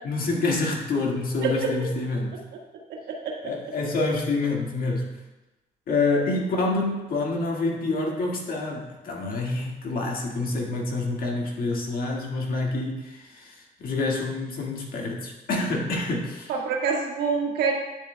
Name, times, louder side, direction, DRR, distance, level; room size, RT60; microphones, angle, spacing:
voice 1, 0.0-2.4 3.4-5.2 5.9-16.5, left 3 dB, 60° left, -1 dB, 1.8 m, -27 dB
voice 2, 2.9-3.3 16.5-17.7, right 5 dB, 80° right, -1 dB, 1.6 m, -26 dB
9.9 x 7.4 x 2.2 m, 1.1 s
cardioid pair, 75°, 17 cm